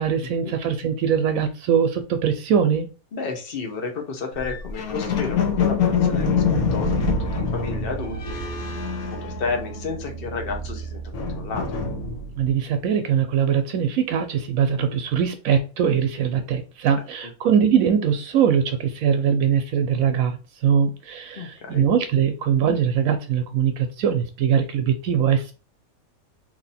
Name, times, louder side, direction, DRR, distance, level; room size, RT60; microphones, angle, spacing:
voice 1, 0.0-2.9 12.3-25.5, right 8 dB, 75° right, 7 dB, 1.0 m, -22 dB
voice 2, 3.1-6.4 6.7-8.4 9.1-11.8 21.4-21.8, left 4 dB, 45° left, 3 dB, 1.1 m, -32 dB
sound 1, 4.4-10.0 10.2-12.5, left 5 dB, 85° left, 1.3 m, -25 dB
sound 2, 6.2-11.3, right 6 dB, 45° right, 0.5 m, -37 dB
3.1 x 2.9 x 4.0 m, 0.33 s
omnidirectional pair, 1.5 m